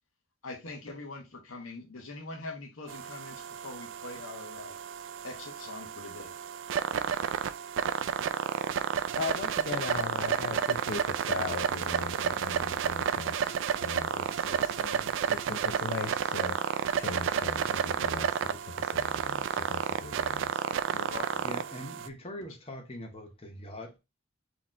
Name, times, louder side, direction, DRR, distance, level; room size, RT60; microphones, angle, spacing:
voice 1, 0.4-4.8 5.2-6.3 20.9-21.5, left 2 dB, 80° left, 1.0 m, -43 dB
sound 1, 2.9-22.1, right 7 dB, 60° right, 0.3 m, -31 dB
voice 2, 9.1-20.6, left 4 dB, 55° left, 0.5 m, -39 dB
voice 3, 21.4-24.0, equal, 30° left, 0.8 m, -42 dB
4.1 x 3.0 x 3.7 m
head